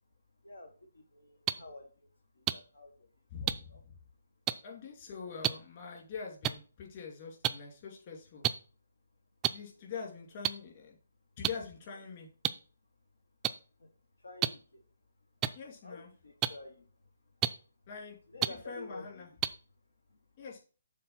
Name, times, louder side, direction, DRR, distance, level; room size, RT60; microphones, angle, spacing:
voice 1, 0.4-1.9 2.4-3.1 3.7-3.8 13.8-13.9 14.2-14.8 15.8-16.9 18.3-19.3, left 2 dB, 85° left, 3 dB, 1.3 m, -49 dB
sound 1, 1.5-1.6 2.5-2.6 3.5-3.6 4.5-4.6 5.4-5.5 6.4-6.5 7.4-7.5 8.4-8.5 9.4-9.5 10.4-10.5 11.4-11.5 12.4-12.5 13.4-13.5 14.4-14.5 15.4-15.5 16.4-16.5 17.4-17.5 18.4-18.5 19.4-19.5, right 13 dB, 20° right, 0.4 m, -27 dB
voice 2, 3.3-4.0 4.6-8.4 9.5-11.0 11.4-12.3 15.5-16.1 17.9-18.2 18.5-19.3 20.4-20.6, left 5 dB, 40° left, -1 dB, 2.6 m, -44 dB
6.7 x 3.9 x 5.7 m, 0.38 s
figure-of-eight pair, 150°, 0 cm